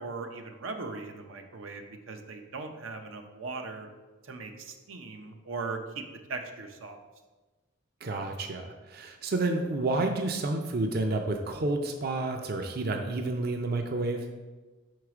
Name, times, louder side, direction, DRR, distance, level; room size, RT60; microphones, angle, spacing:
voice 1, 0.0-3.9 4.2-6.0 6.3-7.0, right 3 dB, 90° right, 5 dB, 0.7 m, -39 dB
voice 2, 8.0-14.3, right 2 dB, 50° right, 4 dB, 0.5 m, -30 dB
4.9 x 4.7 x 4.8 m, 1.2 s
head